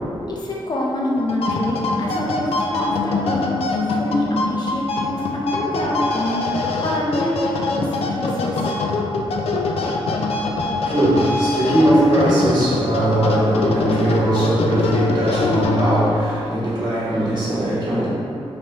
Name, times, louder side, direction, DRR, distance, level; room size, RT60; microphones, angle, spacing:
voice 1, 0.3-3.5 4.0-8.7, left 1 dB, 45° left, -4 dB, 0.7 m, -26 dB
sound 1, 1.2-16.1, left 3 dB, 80° left, 0.4 m, -23 dB
voice 2, 10.4-18.1, right 1 dB, 45° right, -9 dB, 1.4 m, -19 dB
4.5 x 3.3 x 2.9 m, 2.7 s
wide cardioid pair, 145°, 10 cm